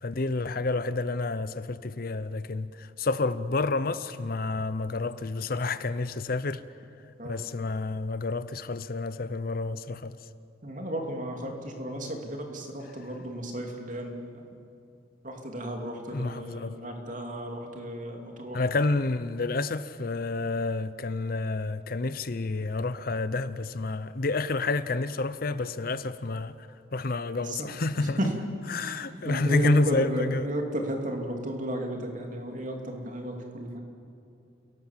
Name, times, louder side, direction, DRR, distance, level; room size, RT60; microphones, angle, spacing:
voice 1, 0.0-6.6 7.2-10.2 16.1-16.7 18.5-26.6 26.9-28.2 28.7-30.5, left 3 dB, 50° left, 0.7 m, -29 dB
voice 2, 10.6-14.4 15.2-18.6 27.3-27.7 28.0-28.3 28.8-33.8, right 1 dB, 45° right, 2.9 m, -34 dB
29.0 x 18.0 x 7.5 m
head